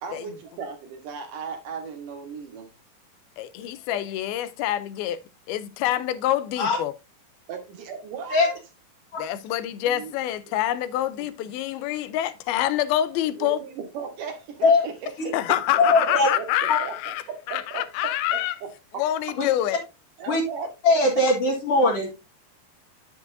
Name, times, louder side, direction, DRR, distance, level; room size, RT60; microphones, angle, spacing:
voice 1, 0.0-2.7 7.5-8.6 9.9-10.1 10.5-10.6 13.4-15.4 15.7-18.7 18.9-19.0 20.2-20.7, right 6 dB, 65° right, 2.7 m, -36 dB
voice 2, 3.4-5.2 5.5-6.9 9.2-13.6 15.3-18.5 19.0-19.8, left 13 dB, 90° left, 2.5 m, -26 dB
voice 3, 15.8-16.3 16.7-16.8 19.4-19.5 20.3-20.4 20.8-22.1, left 2 dB, 50° left, 2.4 m, -20 dB
9.2 x 6.9 x 2.6 m
omnidirectional pair, 4.3 m